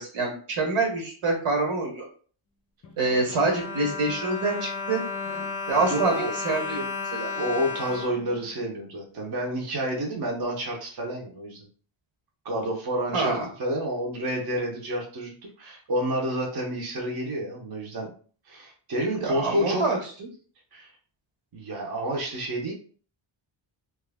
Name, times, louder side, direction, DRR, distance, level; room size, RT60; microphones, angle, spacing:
voice 1, 0.0-2.0 3.0-5.0 5.7-6.8 7.1-7.3 13.1-13.5 19.2-20.0, right 3 dB, 90° right, 0 dB, 1.4 m, -26 dB
Bowed string instrument, 2.8-9.1 9.8-9.9 10.2-10.3, left 4 dB, 30° left, 0.5 m, -34 dB
voice 2, 5.9-6.3 7.3-11.7 12.4-18.1 18.5-19.9 20.7-20.9 21.5-22.7, equal, 50° right, -1 dB, 0.8 m, -29 dB
3.1 x 2.3 x 3.4 m, 0.43 s
wide cardioid pair, 170°, 48 cm